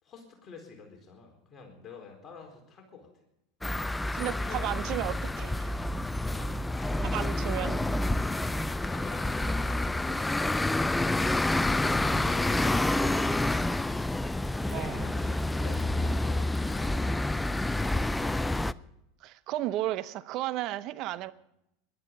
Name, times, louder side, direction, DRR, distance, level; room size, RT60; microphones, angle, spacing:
voice 1, 0.0-3.1 4.2-5.2 6.3-7.6 8.8-10.6 11.7-13.7 14.6-18.7 21.1-21.3, left 4 dB, 35° left, 4.3 m, -47 dB
sound 1, 3.6-18.7, left 2 dB, 10° left, 0.5 m, -28 dB
voice 2, 4.1-5.8 7.1-7.8 14.7-15.1 19.2-21.3, right 15 dB, 50° right, 0.8 m, -33 dB
21.0 x 12.0 x 5.4 m
hypercardioid pair, 90°, 0 cm